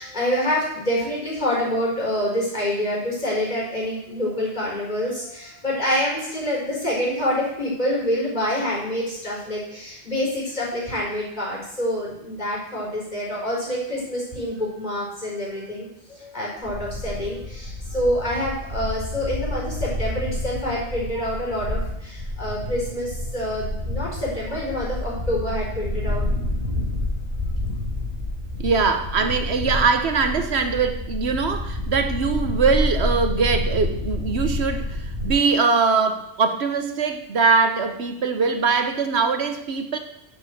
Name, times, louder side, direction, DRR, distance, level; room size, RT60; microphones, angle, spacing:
voice 1, 0.0-26.3 29.4-29.5 29.8-29.9, equal, 40° left, -4 dB, 4.8 m, -27 dB
sound 1, 16.6-35.3, left 1 dB, 30° right, 3.1 m, -29 dB
voice 2, 28.6-40.0, right 4 dB, 70° right, 7 dB, 1.2 m, -22 dB
7.6 x 7.5 x 7.8 m, 0.79 s
omnidirectional pair, 1.1 m